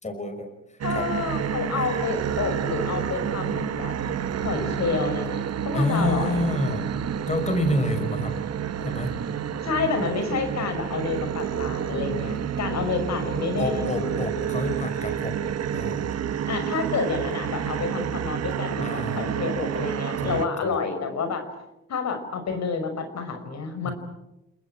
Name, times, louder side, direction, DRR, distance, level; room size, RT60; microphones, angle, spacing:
voice 1, 0.0-1.1 5.7-8.4 8.8-9.1 13.6-15.4 15.7-16.1 18.8-19.4 20.2-20.7 23.8-23.9, left 1 dB, 25° left, 6 dB, 5.7 m, -28 dB
voice 2, 0.8-3.9 4.4-6.5 9.6-14.0 16.5-21.4 21.9-23.9, left 4 dB, 60° left, 7 dB, 5.4 m, -29 dB
sound 1, 0.8-20.5, right 9 dB, 55° right, 1.5 m, -29 dB
30.0 x 20.0 x 8.9 m, 0.91 s
cardioid pair, 90°, 30 cm